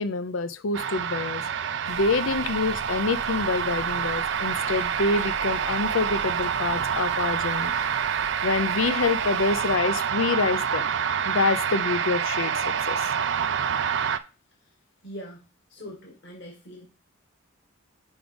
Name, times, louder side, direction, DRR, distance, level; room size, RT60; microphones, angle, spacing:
voice 1, 0.0-1.4 1.9-7.7 8.4-10.9 11.2-13.1, left 4 dB, 80° left, 0.6 m, -26 dB
sound 1, 0.7-14.2, right 7 dB, 60° right, 0.5 m, -27 dB
sound 2, 1.8-9.8, right 2 dB, 80° right, 1.1 m, -46 dB
voice 2, 15.0-16.9, equal, 60° left, 1.9 m, -42 dB
5.3 x 5.1 x 5.2 m
head